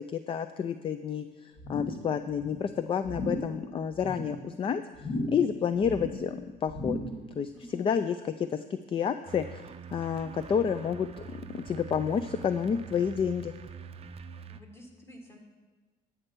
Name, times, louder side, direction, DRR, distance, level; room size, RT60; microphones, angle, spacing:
voice 1, 0.1-4.8 5.3-7.0 7.4-9.6 9.9-13.5, left 7 dB, 30° left, 11 dB, 0.4 m, -30 dB
sound 1, 1.6-2.1 2.3-2.7 3.0-3.5 3.9-4.4 4.9-5.5 5.8-6.3 6.7-7.2 7.6-7.7, left 1 dB, 60° left, 2.7 m, -35 dB
voice 2, 7.5-7.9 14.5-15.4, equal, 15° left, 1 dB, 1.9 m, -49 dB
sound 2, 9.3-14.6, right 6 dB, 35° right, 0.5 m, -45 dB
11.0 x 7.9 x 4.6 m, 1.3 s
cardioid pair, 110°, 17 cm